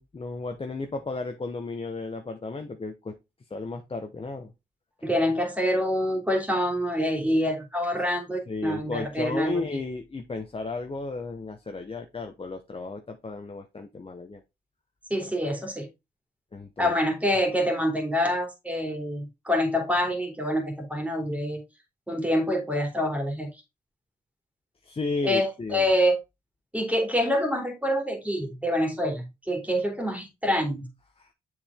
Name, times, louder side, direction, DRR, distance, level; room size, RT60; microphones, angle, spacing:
voice 1, 0.0-3.2 3.5-4.5 8.5-14.4 16.5-16.9 24.8-25.9 31.2-31.3, left 3 dB, 35° left, 5 dB, 1.0 m, -34 dB
voice 2, 5.0-9.6 15.1-15.9 16.8-21.6 22.1-23.5 25.2-26.2 26.7-30.9, equal, 10° right, 4 dB, 3.0 m, -26 dB
7.0 x 5.0 x 3.6 m, 0.24 s
supercardioid pair, 50°, 17 cm